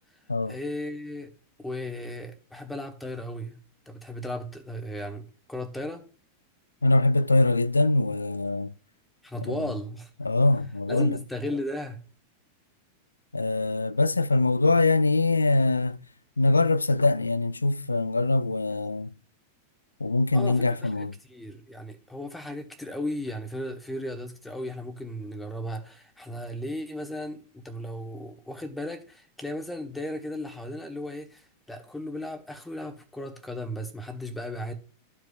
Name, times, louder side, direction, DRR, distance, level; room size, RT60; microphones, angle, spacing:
voice 1, 0.4-1.3 1.6-3.6 3.9-6.0 9.2-10.1 10.9-12.0 20.3-34.7, left 1 dB, 5° left, 1.3 m, -36 dB
voice 2, 6.8-8.7 9.5-9.6 10.2-11.2 13.3-16.0 16.4-19.1 20.0-21.1, left 2 dB, 80° left, 0.3 m, -23 dB
13.5 x 4.7 x 2.3 m
figure-of-eight pair, 90°, 0 cm